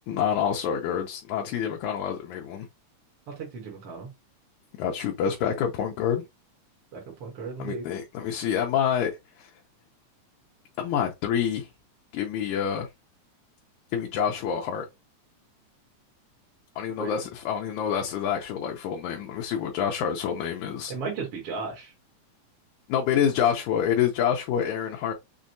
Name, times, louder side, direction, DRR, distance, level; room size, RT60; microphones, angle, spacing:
voice 1, 0.1-2.7 4.8-6.2 7.6-9.5 10.8-11.7 12.1-12.9 13.9-14.9 16.8-20.9 22.9-25.1, left 8 dB, 80° left, 2.0 m, -27 dB
voice 2, 3.3-4.1 6.9-7.9 17.0-17.3 20.9-21.9, right 4 dB, 55° right, 1.9 m, -35 dB
6.2 x 2.2 x 2.6 m
omnidirectional pair, 3.5 m